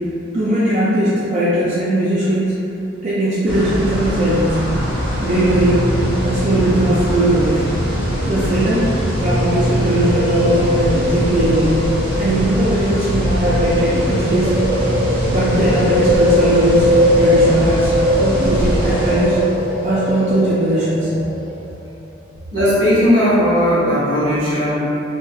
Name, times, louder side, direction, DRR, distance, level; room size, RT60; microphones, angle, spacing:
voice 1, 0.3-2.7 3.0-4.6 5.2-5.9 6.2-7.6 8.2-8.9 9.2-11.8 12.2-14.6 15.3-16.9 17.2-17.9 18.2-19.5 19.8-21.1, right 1 dB, 35° right, -10 dB, 0.3 m, -18 dB
sound 1, 3.5-19.8, equal, 10° right, 1.0 m, -22 dB
sound 2, 4.7-21.6, equal, 70° left, 1.1 m, -22 dB
voice 2, 22.5-24.7, equal, 65° right, -11 dB, 1.2 m, -16 dB
2.8 x 2.3 x 2.2 m, 2.7 s
head